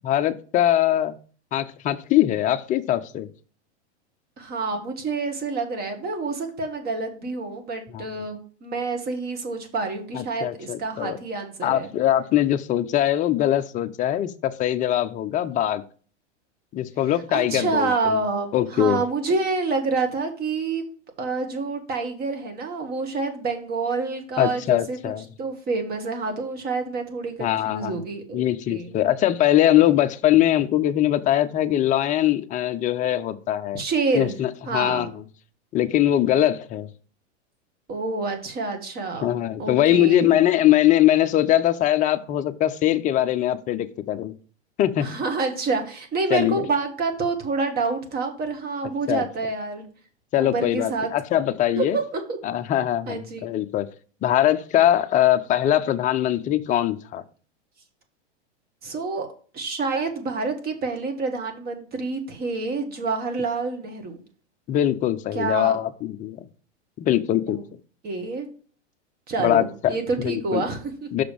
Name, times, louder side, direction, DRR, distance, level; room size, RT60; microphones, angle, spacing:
voice 1, 0.0-1.2 1.5-3.3 7.9-8.1 10.1-11.2 11.6-15.8 16.7-18.2 18.5-19.0 24.4-25.2 27.4-28.0 28.3-33.8 34.1-35.1 35.7-36.9 39.2-44.3 44.8-45.1 46.3-46.7 49.1-49.2 50.3-52.0 52.4-53.9 54.2-57.2 64.7-66.4 67.0-67.6 69.4-70.6 71.1-71.2, left 12 dB, 20° left, 9 dB, 0.5 m, -22 dB
voice 2, 4.4-11.9 17.3-20.8 21.2-25.0 25.4-28.4 28.7-28.9 33.7-34.3 34.7-35.1 37.9-40.3 45.0-49.9 50.4-51.1 51.7-52.2 53.1-53.5 58.8-59.3 59.5-64.2 65.3-65.7 67.5-67.6 68.0-68.5 69.3-71.1, right 3 dB, 25° right, 6 dB, 1.6 m, -28 dB
6.1 x 5.0 x 5.1 m, 0.41 s
hypercardioid pair, 125°, 35 cm